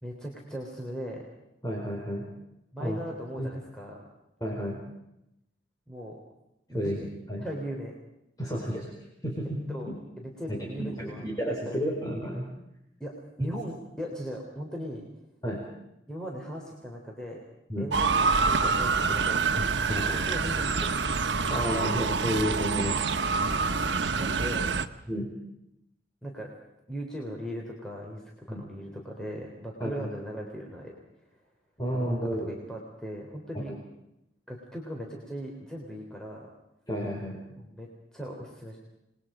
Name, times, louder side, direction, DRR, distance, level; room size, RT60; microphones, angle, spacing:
voice 1, 0.0-1.2 2.7-4.0 5.9-6.2 6.7-6.9 7.4-7.9 9.7-9.9 10.2-11.3 11.7-11.8 13.0-13.1 13.4-15.0 16.1-17.5 17.8-18.1 18.4-19.4 20.1-21.0 23.4-23.6 24.2-24.7 26.2-26.5 26.9-30.9 31.9-33.7 34.5-36.5 37.6-38.8, equal, 5° left, -1 dB, 3.7 m, -38 dB
voice 2, 1.6-2.2 2.8-3.0 3.4-3.5 4.4-4.8 6.7-7.4 8.4-8.9 9.2-9.6 9.9-10.0 10.5-12.4 13.4-13.5 15.4-15.6 17.7-17.9 19.6-20.2 21.5-23.0 25.1-25.3 28.5-28.6 29.8-29.9 31.8-32.6 36.9-37.4, equal, 20° left, -2 dB, 4.6 m, -31 dB
Motor vehicle (road) / Siren, 17.9-24.8, right 4 dB, 70° right, 1.2 m, -26 dB
28.5 x 21.5 x 5.1 m, 0.85 s
head